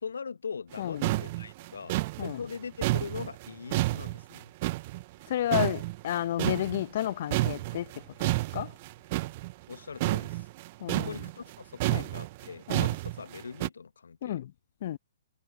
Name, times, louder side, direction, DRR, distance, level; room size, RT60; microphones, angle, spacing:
voice 1, 0.0-2.0 2.2-4.5 9.7-10.5 10.9-14.4, left 5 dB, 70° left, 1.3 m, -41 dB
sound 1, 0.7-0.8 1.0-5.3 5.5-7.1 7.3-13.7, right 19 dB, 35° right, 0.9 m, -30 dB
voice 2, 0.8-1.2 2.2-2.4 5.3-7.9 8.2-8.7 10.8-11.2 11.9-12.1 12.7-12.9 14.2-14.5 14.8-15.0, left 12 dB, 45° left, 1.2 m, -31 dB
figure-of-eight pair, 125°, 0 cm